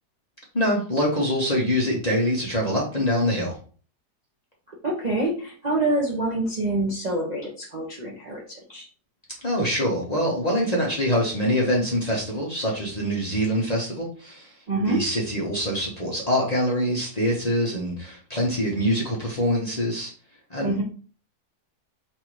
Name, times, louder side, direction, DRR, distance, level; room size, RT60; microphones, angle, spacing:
voice 1, 0.5-3.6 9.4-14.6 14.9-20.1 20.5-20.8, equal, 30° left, -3 dB, 0.8 m, -24 dB
voice 2, 4.8-8.9 14.7-15.0 20.6-20.8, right 2 dB, 40° right, -3 dB, 0.6 m, -26 dB
3.4 x 2.7 x 4.6 m, 0.40 s
omnidirectional pair, 1.7 m